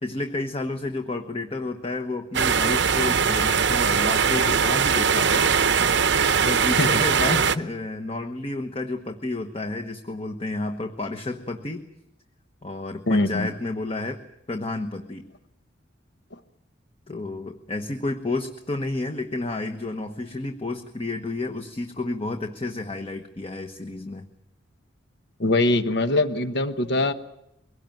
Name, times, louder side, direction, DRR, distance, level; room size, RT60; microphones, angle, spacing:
voice 1, 0.0-5.5 6.4-11.9 12.6-14.2 14.5-15.3 17.1-24.3, left 2 dB, 30° left, 5 dB, 1.2 m, -30 dB
sound 1, 2.3-7.6, right 6 dB, 65° right, 0.8 m, -21 dB
voice 2, 13.1-13.5 25.4-27.1, left 2 dB, 60° left, 10 dB, 1.1 m, -22 dB
23.0 x 17.5 x 9.1 m, 0.83 s
head